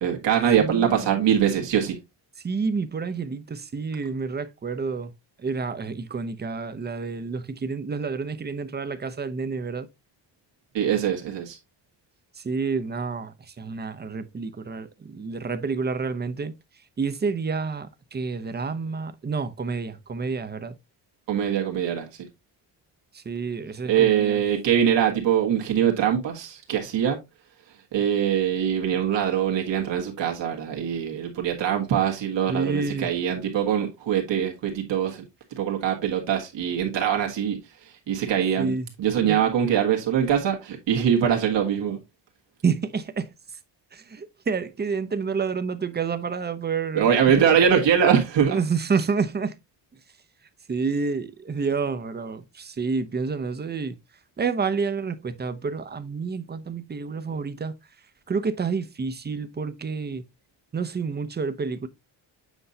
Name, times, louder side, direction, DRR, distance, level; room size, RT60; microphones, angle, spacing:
voice 1, 0.0-2.0 10.7-11.6 21.3-22.1 23.9-27.2 27.9-35.2 35.5-38.7 39.0-42.0 46.9-48.6, right 8 dB, 85° right, 1.6 m, -23 dB
voice 2, 0.6-1.2 2.4-5.1 5.4-9.9 12.3-16.6 17.0-20.8 23.1-24.4 32.5-33.1 38.6-38.9 39.2-39.4 42.6-43.3 43.9-47.1 47.4-47.5 48.5-49.6 50.7-54.0 54.4-57.7 58.3-60.2 60.7-61.9, right 5 dB, 25° right, 0.6 m, -29 dB
8.0 x 5.4 x 2.7 m
cardioid pair, 125°, 43 cm